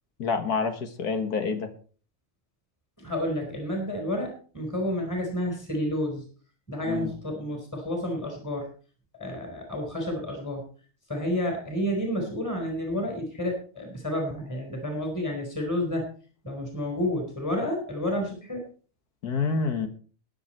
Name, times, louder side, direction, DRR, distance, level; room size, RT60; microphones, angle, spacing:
voice 1, 0.2-1.7 6.9-7.1 19.2-19.9, left 5 dB, 80° left, 7 dB, 2.1 m, -27 dB
voice 2, 3.0-6.3 6.7-8.7 9.2-10.7 11.1-16.1 16.4-18.6, left 1 dB, 10° left, 1 dB, 4.2 m, -30 dB
21.0 x 7.4 x 4.4 m, 0.40 s
omnidirectional pair, 1.6 m